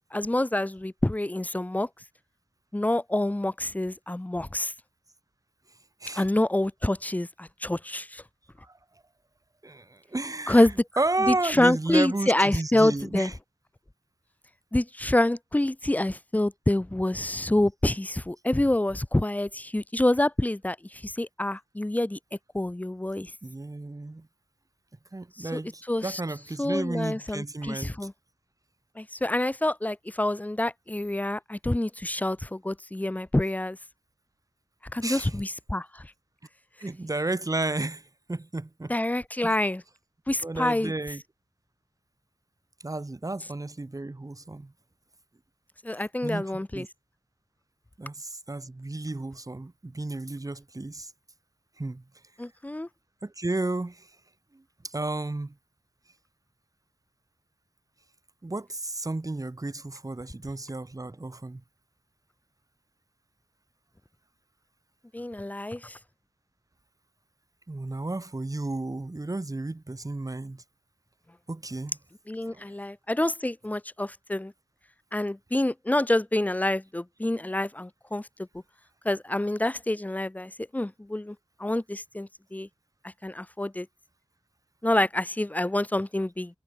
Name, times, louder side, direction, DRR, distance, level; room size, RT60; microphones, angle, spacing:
voice 1, 0.1-1.9 2.7-4.7 6.1-8.2 10.5-10.7 11.3-13.3 14.7-22.2 22.5-23.3 25.4-25.6 25.9-26.2 26.6-28.1 29.0-33.8 34.9-36.1 38.9-39.8 40.3-40.9 45.8-46.9 52.4-52.9 65.1-66.0 72.3-74.5 75.1-78.3 79.0-82.7 83.0-83.9 84.8-86.6, left 1 dB, 15° left, 0.7 m, -27 dB
voice 2, 9.6-13.3 23.4-24.3 25.1-27.9 35.0-35.4 36.8-39.0 39.4-39.5 40.4-41.2 42.8-44.7 46.2-46.9 48.0-51.1 51.8-52.0 53.2-54.1 54.5-55.5 58.4-61.6 67.7-70.6 71.5-72.0 72.5-72.7, right 2 dB, 30° right, 1.5 m, -32 dB
wide cardioid pair, 75°, 11 cm